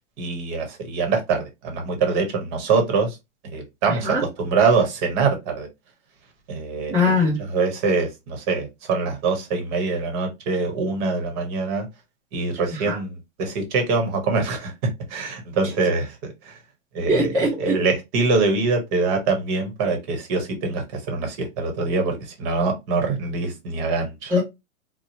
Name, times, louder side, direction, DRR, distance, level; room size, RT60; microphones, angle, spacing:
voice 1, 0.2-3.2 3.4-5.7 6.5-6.9 7.5-11.9 12.3-16.6 16.9-24.3, right 4 dB, 35° right, 0.9 m, -24 dB
voice 2, 3.9-4.2 6.9-7.4 12.7-13.0 15.6-15.7 17.1-17.8 24.3-24.4, left 2 dB, 5° right, 0.3 m, -21 dB
2.8 x 2.0 x 2.8 m
hypercardioid pair, 135°, 40 cm